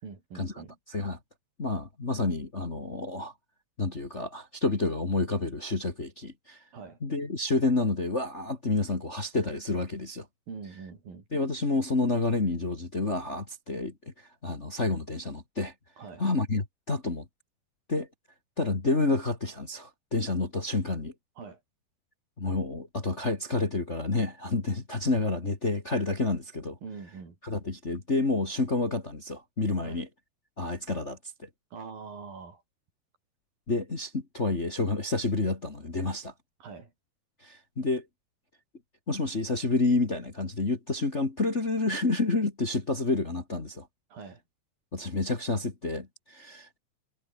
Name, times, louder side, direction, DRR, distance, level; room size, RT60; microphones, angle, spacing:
voice 1, 0.0-0.8 6.7-7.0 10.5-11.3 16.0-16.2 21.4-21.6 26.8-27.4 29.8-30.0 31.7-32.6 36.6-36.9 44.1-44.4, right 5 dB, 80° right, 7.0 m, -43 dB
voice 2, 1.6-3.3 3.8-6.6 7.0-10.3 11.3-13.9 14.4-15.7 16.2-17.2 17.9-18.1 18.6-21.1 22.4-26.8 27.4-30.1 30.6-31.5 33.7-36.3 37.4-38.1 39.1-43.9 44.9-46.8, left 3 dB, 25° left, 2.0 m, -29 dB
omnidirectional pair, 4.0 m